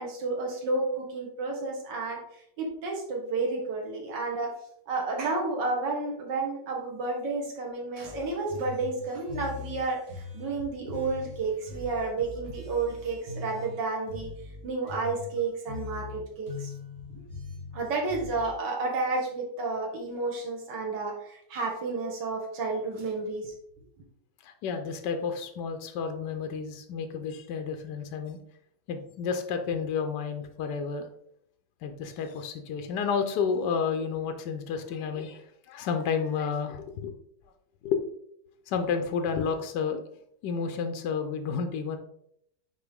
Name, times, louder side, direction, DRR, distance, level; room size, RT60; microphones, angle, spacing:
voice 1, 0.0-2.2 2.6-4.5 4.9-14.3 14.6-16.7 17.7-23.5, right 3 dB, 90° right, -1 dB, 1.9 m, -31 dB
sound 1, 8.0-18.5, left 4 dB, 60° right, 1.7 m, -42 dB
voice 2, 24.4-28.4 28.9-31.1 31.8-37.1 37.8-38.0 38.7-40.0 40.4-42.0, left 6 dB, 80° left, 6 dB, 1.3 m, -31 dB
7.0 x 4.6 x 3.5 m, 0.72 s
omnidirectional pair, 1.9 m